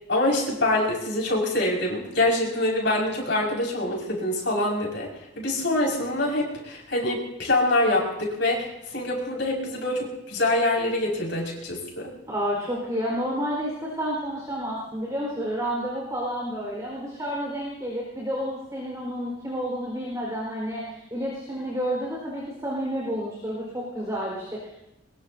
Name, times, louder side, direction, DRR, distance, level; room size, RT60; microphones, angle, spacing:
voice 1, 0.1-5.1 5.4-8.7 8.9-12.1, left 1 dB, 60° left, -2 dB, 5.7 m, -25 dB
voice 2, 12.3-24.8, equal, 15° right, -4 dB, 4.5 m, -30 dB
22.5 x 22.0 x 2.8 m, 0.88 s
head